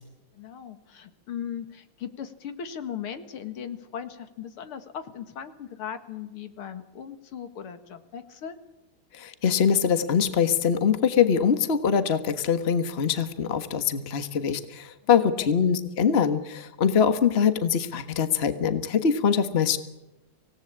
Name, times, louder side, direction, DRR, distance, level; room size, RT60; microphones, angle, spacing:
voice 1, 0.3-8.5 15.2-15.6, left 8 dB, 80° left, 10 dB, 2.5 m, -38 dB
voice 2, 9.1-19.8, left 7 dB, 30° left, 10 dB, 1.5 m, -23 dB
25.5 x 18.0 x 8.7 m, 0.98 s
omnidirectional pair, 2.4 m